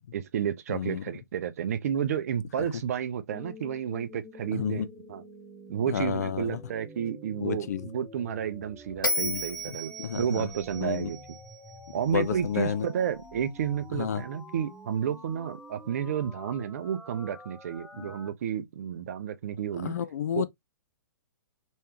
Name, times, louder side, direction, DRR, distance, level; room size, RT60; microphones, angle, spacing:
voice 1, 0.1-5.2 5.7-11.4 11.9-20.0 20.3-20.5, right 8 dB, 50° right, 0.6 m, -31 dB
voice 2, 0.7-1.0 4.5-4.9 5.9-6.6 7.4-7.9 9.2-9.4 10.0-10.5 10.8-11.1 12.1-12.9 13.9-14.2 18.0-18.1 19.8-20.5, left 8 dB, 55° left, 0.5 m, -30 dB
sound 1, 3.3-18.3, left 1 dB, ahead, 0.6 m, -48 dB
Bell, 9.0-12.3, left 1 dB, 75° left, 1.1 m, -34 dB
3.2 x 3.1 x 2.9 m
figure-of-eight pair, 115°, 11 cm